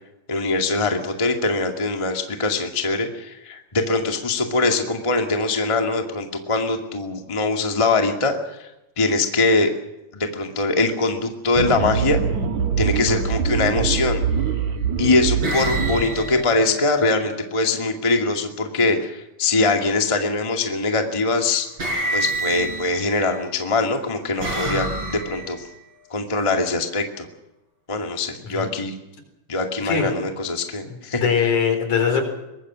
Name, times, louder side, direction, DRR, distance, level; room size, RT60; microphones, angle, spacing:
voice 1, 0.3-8.7 9.0-9.7 10.1-12.2 12.8-14.2 15.0-21.7 22.1-25.7 26.1-27.3 27.9-28.9 29.5-31.2, left 3 dB, 10° left, 4 dB, 1.6 m, -22 dB
sound 1, 11.5-16.0, right 6 dB, 60° right, 2.6 m, -23 dB
sound 2, 13.1-13.4 14.3-14.8 15.4-17.5 19.7-20.2 21.3-21.4 21.8-23.4 24.0-25.7, right 1 dB, 35° right, 7.1 m, -29 dB
voice 2, 30.8-32.2, left 6 dB, 60° left, 6 dB, 5.5 m, -22 dB
24.0 x 20.5 x 6.3 m, 0.96 s
omnidirectional pair, 3.9 m